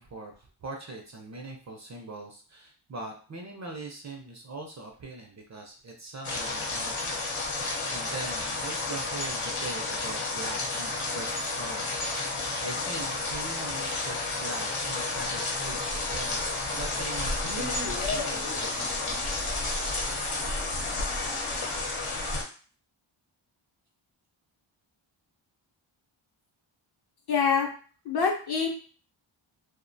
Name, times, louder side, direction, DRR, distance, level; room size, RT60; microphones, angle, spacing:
voice 1, 0.0-7.2 7.6-11.9 12.3-19.5, right 2 dB, 35° right, 1 dB, 0.4 m, -42 dB
sound 1, 6.2-22.4, left 3 dB, 80° left, 0.8 m, -31 dB
voice 2, 27.3-27.7 28.0-28.7, left 6 dB, 50° left, 0 dB, 0.7 m, -25 dB
2.4 x 2.1 x 2.5 m, 0.40 s
wide cardioid pair, 100°, 49 cm